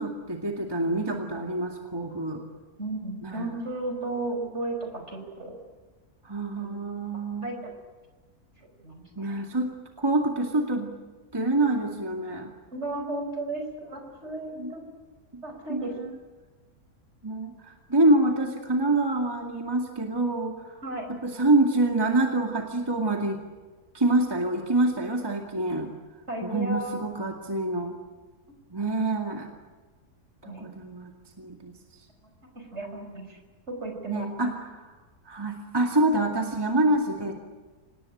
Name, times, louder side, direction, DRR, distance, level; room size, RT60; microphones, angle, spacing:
voice 1, 0.0-2.4 3.2-3.5 6.2-7.5 9.2-9.7 10.0-11.0 11.3-12.5 14.6-14.7 15.3-15.4 15.7-16.2 17.2-20.8 21.1-23.4 23.9-25.9 26.4-28.0 28.7-29.5 30.5-31.1 31.4-31.7 34.1-34.8 35.3-37.3, right 2 dB, 15° right, 2 dB, 2.3 m, -26 dB
voice 2, 2.8-5.6 6.6-6.8 7.1-7.6 8.6-9.3 12.7-14.8 15.4-15.9 20.8-21.1 26.3-27.0 30.4-30.7 32.7-33.4 33.7-34.5, right 2 dB, 45° right, 4 dB, 5.6 m, -34 dB
26.0 x 19.5 x 9.9 m, 1.3 s
omnidirectional pair, 1.6 m